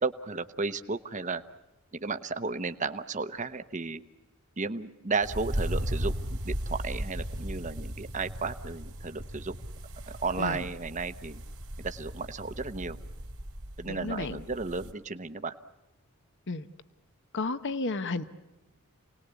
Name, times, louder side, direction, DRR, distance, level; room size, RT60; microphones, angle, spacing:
voice 1, 0.0-1.4 2.0-4.0 4.6-9.5 10.1-11.4 11.8-13.0 13.8-15.5, right 4 dB, 35° right, 10 dB, 1.0 m, -33 dB
sound 1, 5.2-14.9, right 1 dB, 80° right, 3.3 m, -36 dB
voice 2, 13.8-14.4 16.5-16.7 17.3-18.2, left 3 dB, 55° left, 12 dB, 1.1 m, -32 dB
28.5 x 19.5 x 8.3 m, 1.1 s
head